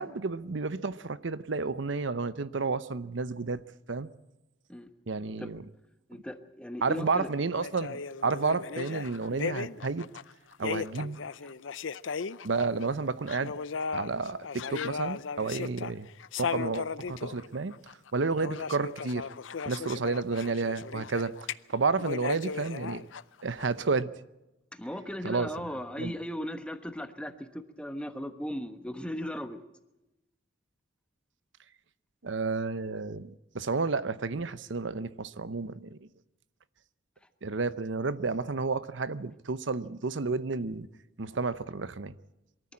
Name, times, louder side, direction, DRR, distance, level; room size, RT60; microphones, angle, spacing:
voice 1, 0.0-3.6 3.9-4.1 5.1-5.6 6.8-10.0 10.6-11.2 12.4-13.5 13.9-16.1 16.4-17.7 18.1-19.3 19.7-23.1 23.4-24.1 25.2-25.5 26.0-26.1 32.2-36.1 37.4-40.9 41.2-42.1, right 4 dB, 75° right, 0.7 m, -31 dB
voice 2, 6.1-7.3 10.6-10.8 24.7-29.6, equal, 5° left, 1.2 m, -37 dB
sound 1, 7.5-12.9 13.3-21.5 22.0-23.7, left 6 dB, 80° left, 0.6 m, -36 dB
23.0 x 14.0 x 8.7 m
head